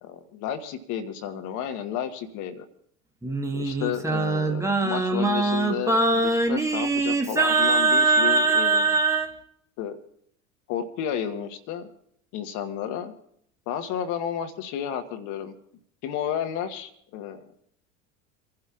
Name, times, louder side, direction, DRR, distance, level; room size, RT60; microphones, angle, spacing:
voice 1, 0.0-2.6 3.5-8.9 9.8-10.0 10.7-11.9 12.3-13.1 13.7-15.5 16.0-17.4, left 9 dB, 50° left, 7 dB, 1.2 m, -32 dB
Singing, 3.2-9.3, right 3 dB, 5° right, 1.3 m, -22 dB
28.5 x 11.5 x 2.4 m, 0.68 s
hypercardioid pair, 85°, 39 cm